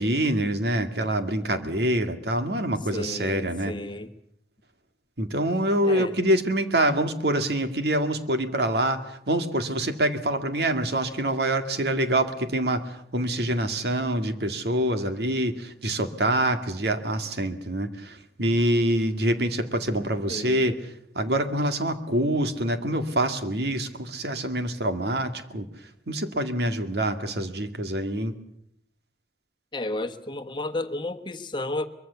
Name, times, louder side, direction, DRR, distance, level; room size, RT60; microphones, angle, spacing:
voice 1, 0.0-3.7 5.2-25.7 26.1-28.3, right 1 dB, 70° right, 2.1 m, -26 dB
voice 2, 2.9-4.1 5.8-6.2 20.3-20.8 29.7-31.9, left 2 dB, 25° left, 1.3 m, -32 dB
23.5 x 23.0 x 7.0 m
head